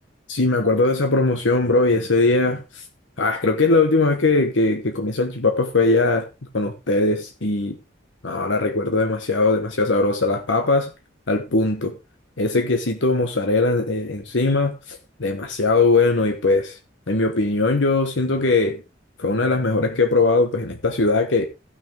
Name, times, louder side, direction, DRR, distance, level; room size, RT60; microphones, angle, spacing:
voice 1, 0.3-2.6 3.2-6.3 6.5-7.8 8.2-10.9 11.3-11.9 12.4-16.8 17.1-18.8 19.2-21.5, left 3 dB, 80° left, 1.1 m, -20 dB
15.0 x 6.4 x 3.5 m
head